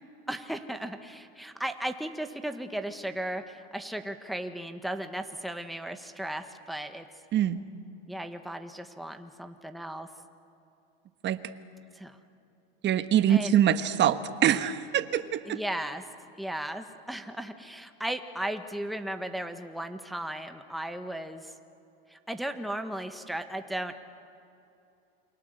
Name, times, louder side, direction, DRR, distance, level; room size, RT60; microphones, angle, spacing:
voice 1, 0.3-7.1 8.1-10.1 11.9-12.2 13.3-13.5 15.5-16.0 16.4-21.5 22.1-23.9, right 1 dB, ahead, 6 dB, 1.5 m, -36 dB
voice 2, 7.3-7.6 11.2-11.4 12.8-15.6, right 10 dB, 35° right, 11 dB, 1.5 m, -24 dB
28.5 x 24.0 x 8.1 m, 2.7 s
supercardioid pair, 125°, 30 cm